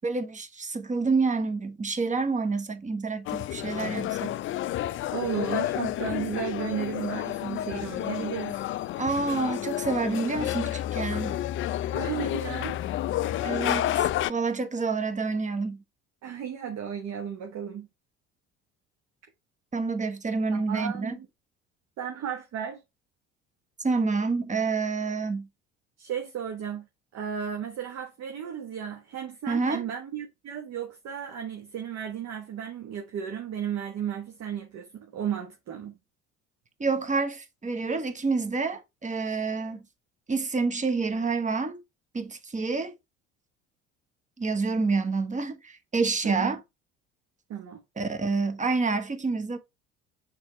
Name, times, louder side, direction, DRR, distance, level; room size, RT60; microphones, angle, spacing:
voice 1, 0.0-4.3 9.0-11.4 13.4-15.8 19.7-21.2 23.8-25.5 29.5-29.8 36.8-39.9 40.3-41.8 42.1-42.9 44.4-46.6 48.0-49.6, right 4 dB, 20° right, 1.2 m, -28 dB
Jazzy café ambience, 3.3-14.3, left 13 dB, 35° left, 0.4 m, -30 dB
voice 2, 5.1-8.6 11.9-12.8 16.2-17.9 20.5-21.3 22.0-22.8 26.0-26.8 27.1-35.9 46.2-46.6 47.5-47.8, right 8 dB, 50° right, 1.3 m, -34 dB
6.3 x 3.8 x 4.3 m
hypercardioid pair, 60°, 35 cm